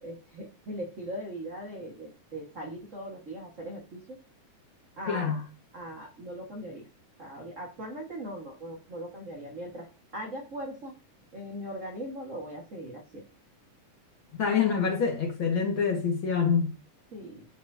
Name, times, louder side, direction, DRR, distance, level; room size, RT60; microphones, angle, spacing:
voice 1, 0.0-4.2 5.0-5.4 5.7-6.8 7.2-9.9 10.1-10.9 11.3-13.2 17.1-17.4, right 1 dB, 50° right, 0.9 m, -39 dB
voice 2, 5.1-5.4 14.4-16.7, left 6 dB, 50° left, 1.8 m, -26 dB
11.0 x 4.6 x 2.6 m
omnidirectional pair, 3.5 m